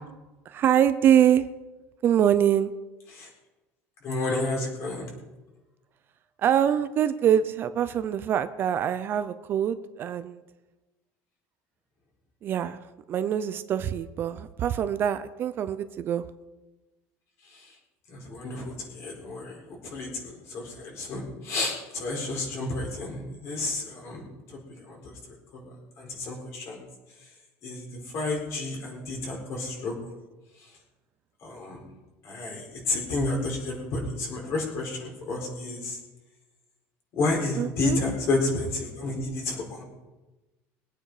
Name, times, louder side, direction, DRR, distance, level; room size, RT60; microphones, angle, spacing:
voice 1, 0.5-1.4 2.0-2.7 6.4-10.4 12.4-12.8 13.1-16.2 37.5-38.0, right 9 dB, 35° right, 12 dB, 0.6 m, -24 dB
voice 2, 4.0-5.1 17.5-17.7 18.1-24.6 24.9-25.2 25.5-25.6 26.0-26.8 27.6-27.8 28.1-29.9 31.4-31.8 32.2-36.0 37.1-39.8, left 2 dB, 45° left, 0 dB, 4.4 m, -31 dB
21.5 x 9.0 x 4.9 m, 1.1 s
cardioid pair, 155°, 6 cm